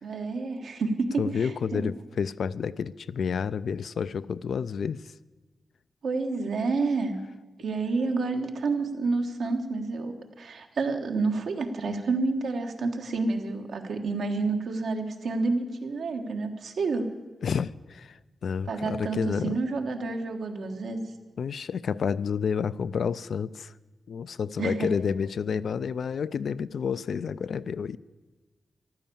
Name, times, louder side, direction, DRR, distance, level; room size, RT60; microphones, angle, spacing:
voice 1, 0.0-1.9 6.0-7.2 7.6-17.1 18.6-21.0 24.6-24.9, right 3 dB, 85° right, 3 dB, 1.4 m, -29 dB
voice 2, 1.2-5.1 17.4-19.6 21.4-23.7 24.1-28.0, left 6 dB, 80° left, 16 dB, 0.4 m, -30 dB
14.5 x 11.5 x 7.0 m, 1.3 s
wide cardioid pair, 105°, 0 cm